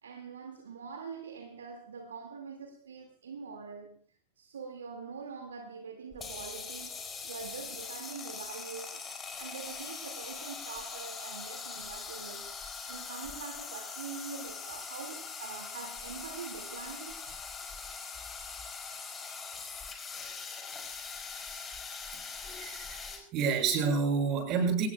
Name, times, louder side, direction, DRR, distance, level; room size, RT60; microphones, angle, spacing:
voice 1, 0.0-4.0 4.4-9.1 9.4-12.6 12.9-17.3, right 5 dB, 65° right, 2.3 m, -44 dB
sound 1, 6.1-23.2, left 5 dB, 20° left, 5.1 m, -42 dB
voice 2, 22.1-24.9, right 5 dB, 35° right, 6.9 m, -30 dB
25.5 x 19.5 x 2.4 m
figure-of-eight pair, 90°, 0 cm